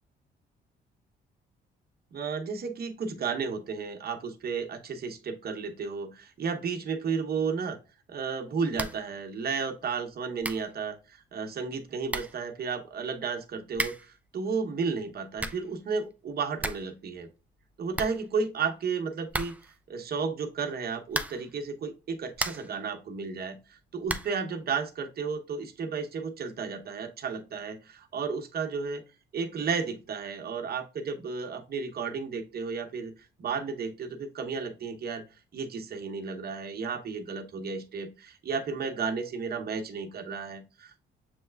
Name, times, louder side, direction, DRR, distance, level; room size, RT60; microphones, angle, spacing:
voice 1, 2.1-7.8 8.1-17.3 17.8-19.6 19.9-29.0 29.3-33.1 33.4-35.2 35.5-41.1, right 5 dB, 50° right, 6 dB, 0.9 m, -33 dB
sound 1, 8.7-9.1 9.4-9.5 10.1-10.2 10.4-10.7 11.7-11.8 12.1-12.4 13.7-14.2 15.1-15.7 16.1-16.2 16.4-17.0 17.2-17.3 17.6-17.7 17.9-18.7 19.3-19.8 21.1-21.6 22.0-22.8 24.0-24.4, right 2 dB, 5° right, 0.4 m, -35 dB
6.9 x 3.2 x 2.2 m, 0.32 s
cardioid pair, 90°, 20 cm